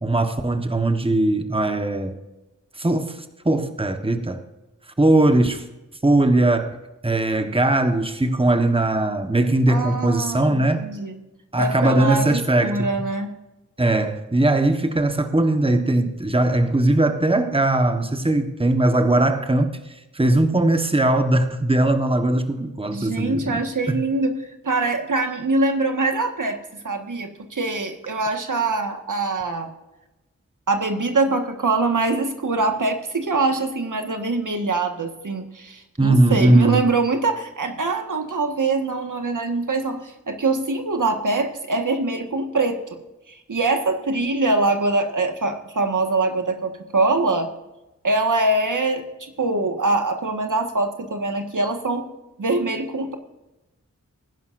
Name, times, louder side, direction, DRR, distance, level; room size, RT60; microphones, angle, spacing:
voice 1, 0.0-2.2 2.8-4.4 5.0-5.7 6.0-6.8 7.0-10.9 11.5-12.9 13.8-23.6 23.9-24.0 36.0-36.8, right 2 dB, 20° right, 7 dB, 1.3 m, -20 dB
voice 2, 9.7-11.2 11.6-13.3 22.9-24.3 24.6-29.7 30.7-43.0 43.3-47.5 48.0-52.1 52.4-53.1, right 3 dB, 80° right, 5 dB, 1.7 m, -23 dB
21.0 x 11.0 x 2.6 m, 1.0 s
wide cardioid pair, 65°, 31 cm